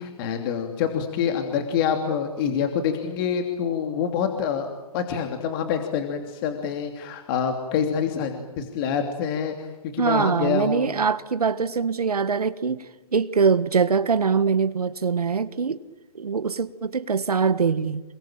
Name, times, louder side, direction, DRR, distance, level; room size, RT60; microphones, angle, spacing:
voice 1, 0.0-4.7 4.9-9.7 9.9-10.9, left 7 dB, 35° left, 3.0 m, -26 dB
voice 2, 10.0-15.8 16.1-18.0, right 5 dB, 90° right, 1.5 m, -23 dB
27.5 x 22.5 x 8.9 m
hypercardioid pair, 145°, 19 cm